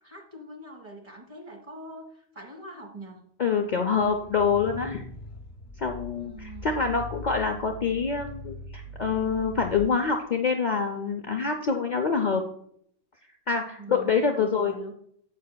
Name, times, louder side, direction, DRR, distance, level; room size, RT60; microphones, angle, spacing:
voice 1, 0.0-3.2 6.2-6.7 13.8-14.9, right 1 dB, 30° right, 1 dB, 1.6 m, -43 dB
voice 2, 3.4-5.0 5.8-12.4 13.5-14.8, left 5 dB, 50° left, 4 dB, 0.6 m, -26 dB
sound 1, 3.8-9.9, left 1 dB, 70° left, 1.0 m, -41 dB
14.5 x 5.1 x 2.2 m, 0.67 s
omnidirectional pair, 1.1 m